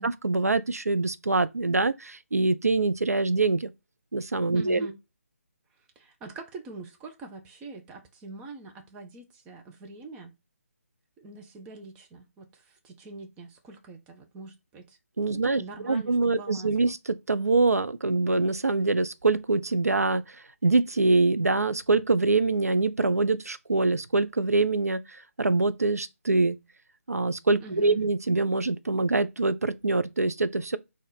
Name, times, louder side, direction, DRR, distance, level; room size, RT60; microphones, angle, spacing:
voice 1, 0.0-3.7 4.1-4.9 15.2-20.4 20.6-26.6 27.1-30.8, right 3 dB, 90° right, 0.4 m, -24 dB
voice 2, 4.5-5.0 6.0-10.3 11.2-15.0 15.4-17.0 27.6-28.0, right 3 dB, 15° right, 0.6 m, -44 dB
4.2 x 2.5 x 4.8 m
figure-of-eight pair, 150°, 8 cm